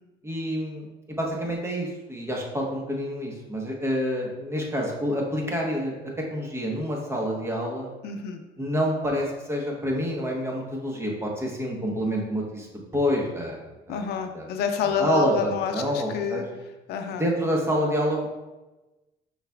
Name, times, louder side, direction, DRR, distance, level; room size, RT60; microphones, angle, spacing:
voice 1, 0.2-6.0 6.3-7.9 8.6-12.7 12.9-13.6 13.9-14.0 14.3-14.5 14.8-16.4 17.2-18.3, equal, 15° right, -1 dB, 1.1 m, -27 dB
voice 2, 8.0-8.4 13.9-16.4 16.9-17.2, left 7 dB, 75° left, 6 dB, 0.5 m, -28 dB
5.6 x 4.0 x 2.4 m, 1.1 s
cardioid pair, 110°, 17 cm